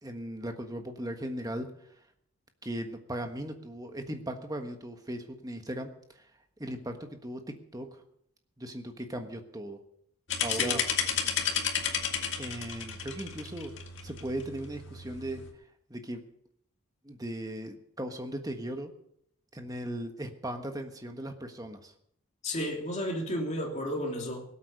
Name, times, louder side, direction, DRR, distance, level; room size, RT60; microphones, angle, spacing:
voice 1, 0.0-1.7 2.6-6.2 6.6-7.4 7.7-8.0 8.6-9.8 10.4-10.8 12.4-13.7 14.0-15.5 15.9-16.3 17.0-18.9 19.5-21.9, right 1 dB, 15° right, 6 dB, 1.4 m, -38 dB
sound 1, 10.3-15.5, left 7 dB, 55° left, 2.0 m, -33 dB
voice 2, 22.4-24.4, equal, 35° left, 1 dB, 2.9 m, -33 dB
18.5 x 8.6 x 6.6 m, 0.72 s
head